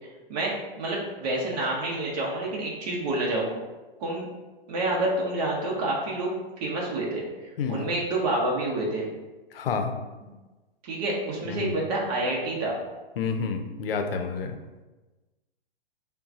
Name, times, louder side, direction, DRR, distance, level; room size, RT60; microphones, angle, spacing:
voice 1, 0.0-3.6 4.0-4.3 4.7-6.3 6.6-7.2 7.7-9.1 10.8-12.8, right 2 dB, 45° right, -3 dB, 0.9 m, -28 dB
voice 2, 7.6-7.9 9.5-9.9 11.4-11.7 13.2-14.5, left 5 dB, 70° left, 6 dB, 0.6 m, -29 dB
5.4 x 2.2 x 2.7 m, 1.2 s
hypercardioid pair, 125°, 30 cm